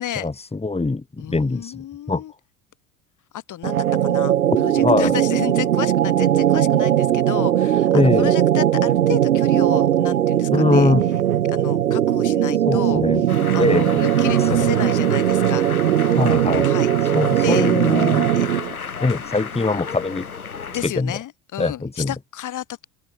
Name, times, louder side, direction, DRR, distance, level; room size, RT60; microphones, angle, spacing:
voice 1, 0.2-1.8 2.1-2.2 4.8-5.1 7.9-8.3 10.5-11.1 12.7-13.2 13.6-14.0 14.5-14.7 16.2-16.7 17.1-18.3 19.0-20.3 20.8-21.1 21.6-22.1, left 3 dB, 15° left, 5.0 m, -22 dB
voice 2, 1.2-2.3 3.3-10.9 11.5-15.7 16.6-17.7 18.3-18.5 19.2-19.3 20.7-22.8, left 12 dB, 45° left, 4.3 m, -32 dB
sound 1, 3.6-18.8, right 11 dB, 90° right, 0.6 m, -19 dB
sound 2, 13.3-20.9, left 6 dB, 85° left, 5.7 m, -32 dB
open air
figure-of-eight pair, 65°, 42 cm